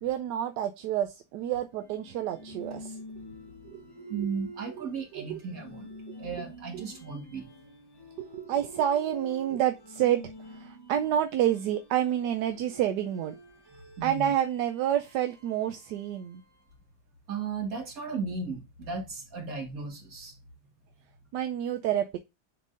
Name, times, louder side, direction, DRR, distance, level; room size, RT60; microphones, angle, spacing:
voice 1, 0.0-3.0 3.6-3.8 5.1-5.4 6.7-6.8 8.2-13.3 14.0-16.4 21.3-22.2, right 11 dB, 75° right, 1.1 m, -29 dB
sound 1, 1.7-16.8, equal, 20° left, 0.7 m, -47 dB
voice 2, 4.1-5.9 6.2-7.5 14.0-14.3 17.3-20.4, right 5 dB, 50° right, 2.2 m, -35 dB
10.0 x 3.9 x 2.5 m
omnidirectional pair, 2.0 m